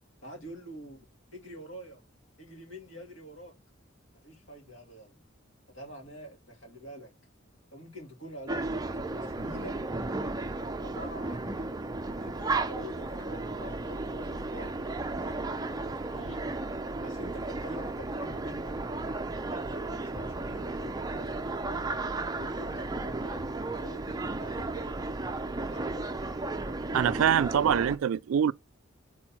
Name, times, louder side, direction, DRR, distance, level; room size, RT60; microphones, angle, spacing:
voice 1, 0.2-1.0 1.3-2.0 2.4-3.5 4.2-5.2 5.7-7.1 7.7-8.8 9.1-9.7 10.8-11.7 12.1-14.7 15.2-16.4 17.0-18.8 19.4-22.0 22.3-25.0 25.5-26.3, equal, 65° left, 2.7 m, -46 dB
sound 1, 8.5-28.0, right 2 dB, 20° right, 0.5 m, -34 dB
voice 2, 26.9-28.5, right 9 dB, 80° right, 0.3 m, -24 dB
4.5 x 4.3 x 5.7 m
head